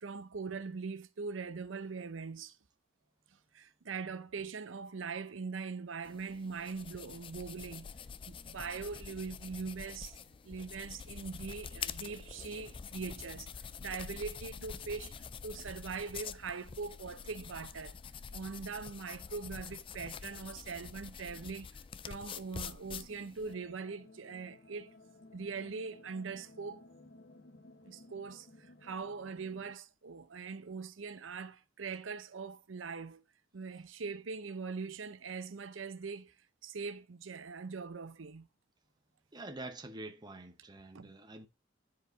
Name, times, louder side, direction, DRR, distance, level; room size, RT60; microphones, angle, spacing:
voice 1, 0.0-2.6 3.5-7.9 8.3-10.2 10.4-18.0 18.3-21.8 22.1-24.9 25.3-26.8 27.9-33.2 33.5-36.3 36.6-38.5 40.9-41.1, right 5 dB, 85° right, 0.7 m, -42 dB
sound 1, 6.0-23.5, left 6 dB, 25° left, 0.3 m, -46 dB
sound 2, 23.4-29.7, left 2 dB, 55° left, 1.0 m, -57 dB
voice 2, 39.3-41.5, right 2 dB, 20° right, 0.8 m, -46 dB
10.5 x 4.7 x 2.6 m
head